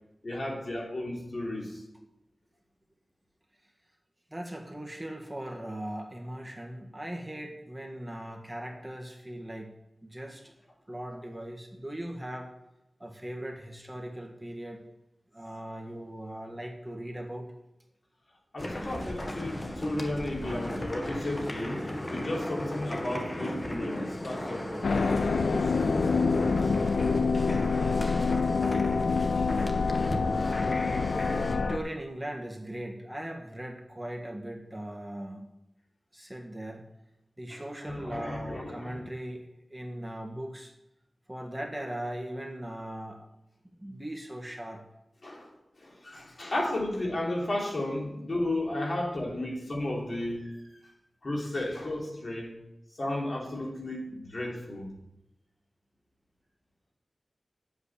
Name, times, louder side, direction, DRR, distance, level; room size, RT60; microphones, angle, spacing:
voice 1, 0.2-1.8 18.5-24.7 25.1-25.9 37.5-39.0 45.2-45.5 45.8-50.7 51.2-52.6 53.0-54.9, left 1 dB, 55° left, -2 dB, 3.2 m, -34 dB
voice 2, 4.3-9.7 10.0-10.5 10.9-12.5 13.0-14.9 15.3-17.5 31.3-35.5 36.1-36.9 37.4-40.7 41.3-43.3 43.8-44.8, right 1 dB, 10° right, 1 dB, 1.5 m, -39 dB
sound 1, 18.6-31.5, left 1 dB, 35° left, 1.5 m, -36 dB
sound 2, 24.8-31.8, left 4 dB, 90° left, 0.6 m, -26 dB
8.1 x 7.5 x 8.4 m, 0.88 s
wide cardioid pair, 60°, 0 cm